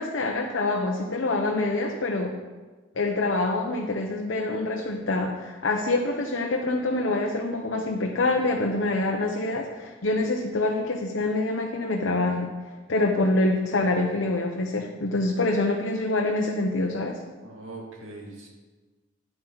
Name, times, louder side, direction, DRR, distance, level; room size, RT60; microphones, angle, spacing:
voice 1, 0.0-2.3 3.0-12.5 12.9-17.2, left 2 dB, 80° left, 1 dB, 0.9 m, -26 dB
voice 2, 17.4-18.5, right 2 dB, 90° right, -2 dB, 2.3 m, -41 dB
10.0 x 8.6 x 4.0 m, 1.3 s
head